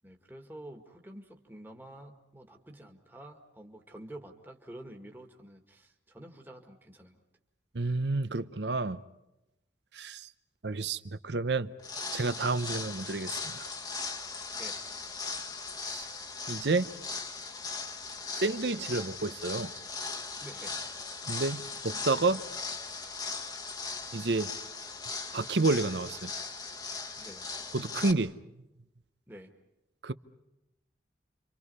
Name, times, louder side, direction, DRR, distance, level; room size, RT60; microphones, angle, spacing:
voice 1, 0.0-7.2 14.6-14.8 20.4-20.9 27.2-27.5 29.3-29.5, right 1 dB, 10° right, 1.7 m, -49 dB
voice 2, 7.7-9.0 9.9-10.3 10.6-11.7 12.1-13.7 16.5-16.9 18.4-19.7 21.3-22.4 24.1-24.5 25.3-26.3 27.7-28.3 30.0-30.1, right 3 dB, 70° right, 0.8 m, -30 dB
sound 1, 11.8-28.1, left 4 dB, 20° left, 1.2 m, -39 dB
29.5 x 25.0 x 5.5 m
head